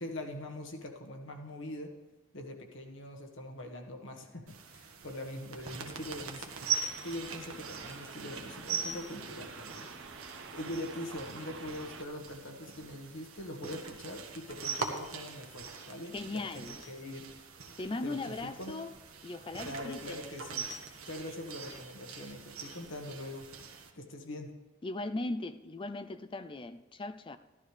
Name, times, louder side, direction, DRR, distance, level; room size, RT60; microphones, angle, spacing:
voice 1, 0.0-1.9 2.3-6.7 7.0-9.9 10.5-17.3 18.0-18.7 19.6-20.6 21.1-23.5 24.0-24.5, left 1 dB, 60° left, 3 dB, 1.5 m, -43 dB
sound 1, 4.5-23.9, right 5 dB, 85° right, 1.4 m, -42 dB
sound 2, 6.8-12.0, right 4 dB, 65° right, 1.1 m, -48 dB
voice 2, 16.1-16.8 17.8-18.9 19.2-20.7 24.8-27.4, left 2 dB, 25° left, 11 dB, 0.4 m, -38 dB
14.0 x 12.5 x 3.3 m, 1.2 s
head